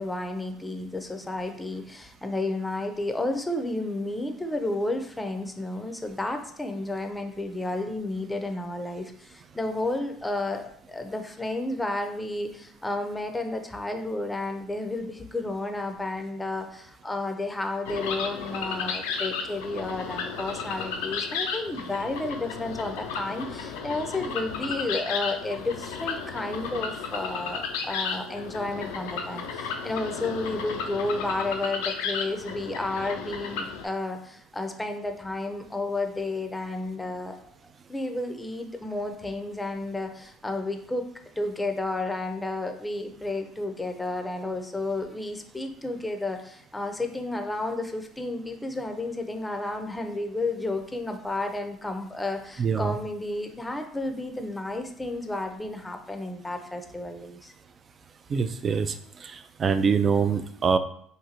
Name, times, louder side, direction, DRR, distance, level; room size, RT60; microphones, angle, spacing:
voice 1, 0.0-37.3 37.9-41.0 41.4-57.5, left 2 dB, 10° left, 5 dB, 0.5 m, -32 dB
sound 1, 17.9-33.9, left 5 dB, 75° left, 0.4 m, -33 dB
voice 2, 52.6-52.9 58.3-59.0 59.2-60.8, right 6 dB, 40° right, 11 dB, 0.3 m, -24 dB
3.7 x 2.6 x 2.9 m, 0.67 s
hypercardioid pair, 65°, 0 cm